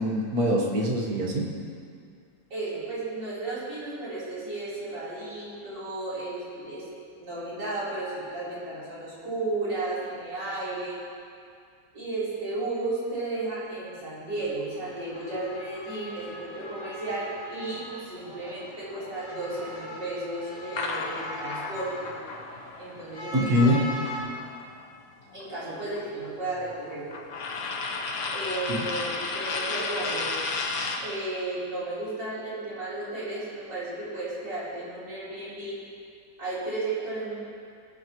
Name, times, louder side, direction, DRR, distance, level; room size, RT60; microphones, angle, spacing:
voice 1, 0.0-1.5 23.3-23.9 28.7-28.8, equal, 55° right, -1 dB, 1.8 m, -24 dB
voice 2, 2.5-6.9 7.2-11.0 11.9-22.1 22.8-23.8 25.3-27.0 28.3-30.3 31.0-35.8 36.4-37.3, right 2 dB, 75° right, -10 dB, 4.4 m, -34 dB
sound 1, 14.8-24.2, left 1 dB, 40° left, 2.1 m, -41 dB
sound 2, 20.8-24.8 25.1-31.1, left 3 dB, 60° left, 1.4 m, -33 dB
20.0 x 9.3 x 3.0 m, 2.3 s
omnidirectional pair, 1.9 m